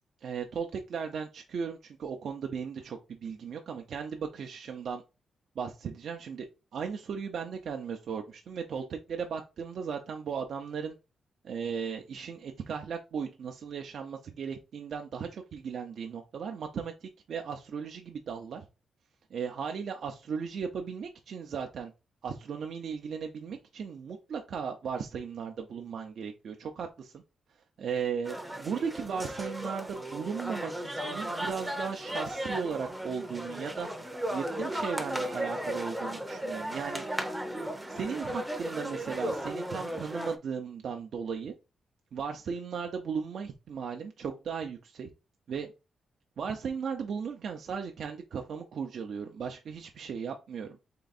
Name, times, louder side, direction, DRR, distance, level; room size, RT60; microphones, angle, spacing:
voice 1, 0.2-5.0 5.6-6.5 6.7-11.0 11.4-18.6 19.3-21.9 22.2-27.2 27.8-33.9 34.3-37.0 37.9-41.5 42.1-45.1 45.5-45.7 46.4-50.8, right 6 dB, 65° right, 0.6 m, -36 dB
sound 1, 28.3-40.4, right 1 dB, 5° right, 0.6 m, -35 dB
3.8 x 3.5 x 4.1 m
wide cardioid pair, 135°, 0 cm